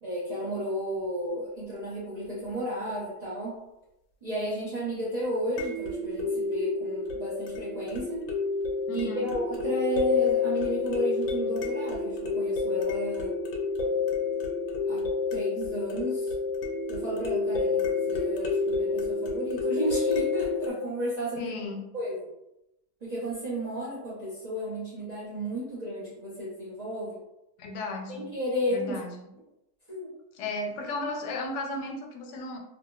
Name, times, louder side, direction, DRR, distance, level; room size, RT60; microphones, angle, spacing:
voice 1, 0.0-3.5 4.2-8.2 8.9-13.3 14.9-15.0 15.3-16.3 16.9-21.5 21.9-22.2 23.0-27.2 28.1-29.0 29.9-30.1, equal, 50° right, -10 dB, 0.4 m, -32 dB
sound 1, 0.9-1.0 5.6-20.7, left 4 dB, 65° left, 0.8 m, -29 dB
voice 2, 8.9-9.3 21.4-21.9 27.6-28.3 28.7-29.3 30.4-32.6, left 2 dB, 85° left, 2 dB, 1.2 m, -35 dB
2.7 x 2.6 x 2.2 m, 0.87 s
omnidirectional pair, 1.7 m